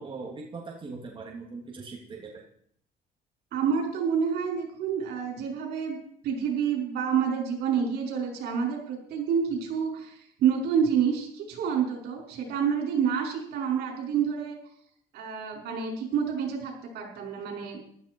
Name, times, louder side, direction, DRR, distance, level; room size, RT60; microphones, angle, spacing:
voice 1, 0.0-2.4, right 4 dB, 30° right, -1 dB, 2.8 m, -40 dB
voice 2, 3.5-6.0 6.2-14.6 15.1-17.8, right 7 dB, 75° right, 0 dB, 5.6 m, -28 dB
15.5 x 13.0 x 4.6 m, 0.65 s
cardioid pair, 110°, 17 cm